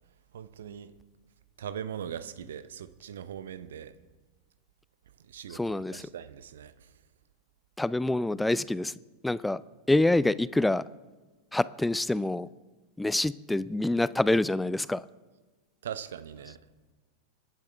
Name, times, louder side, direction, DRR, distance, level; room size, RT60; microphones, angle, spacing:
voice 1, 0.3-0.9 1.6-3.9 5.3-5.6 5.9-6.9 15.8-16.6, right 9 dB, 60° right, 14 dB, 0.8 m, -40 dB
voice 2, 5.5-6.1 7.8-8.9 9.2-9.6 9.9-10.8 11.5-12.5 13.0-15.0, left 2 dB, 5° left, 19 dB, 0.4 m, -26 dB
26.0 x 12.0 x 3.5 m, 1.3 s
figure-of-eight pair, 90°, 0 cm